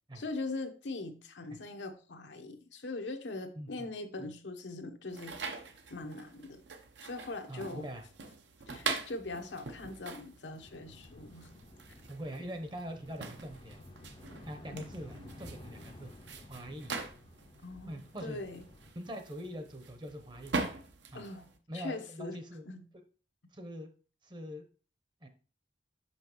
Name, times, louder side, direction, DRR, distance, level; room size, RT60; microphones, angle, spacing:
voice 1, 0.1-5.4 5.9-6.6 7.0-7.9 8.7-11.5 12.4-12.5 14.7-14.9 17.6-18.6 21.1-21.5 21.7-22.4 22.7-22.8, left 2 dB, 85° left, 6 dB, 0.9 m, -41 dB
voice 2, 3.6-3.9 4.2-4.3 7.5-8.1 12.1-13.8 14.4-16.1 16.5-17.1 17.8-18.4 18.9-20.8 21.1-21.2 21.7-22.7 22.9-23.0 23.5-23.9 24.2-24.6 25.2-25.3, equal, 25° right, 6 dB, 0.7 m, -43 dB
sound 1, 5.1-21.6, right 4 dB, 80° right, 0.8 m, -43 dB
sound 2, 10.6-18.9, left 2 dB, 30° left, 0.5 m, -54 dB
6.0 x 5.6 x 3.0 m, 0.37 s
head